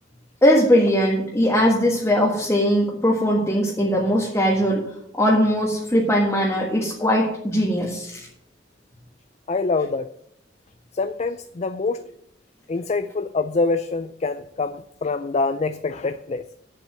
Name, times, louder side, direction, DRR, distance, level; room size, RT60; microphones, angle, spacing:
voice 1, 0.4-4.9 5.2-8.2, equal, 15° left, -3 dB, 1.6 m, -20 dB
voice 2, 9.5-10.1 10.9-12.0 12.7-16.4, left 3 dB, 35° left, 10 dB, 0.4 m, -25 dB
8.2 x 7.4 x 7.6 m, 0.72 s
head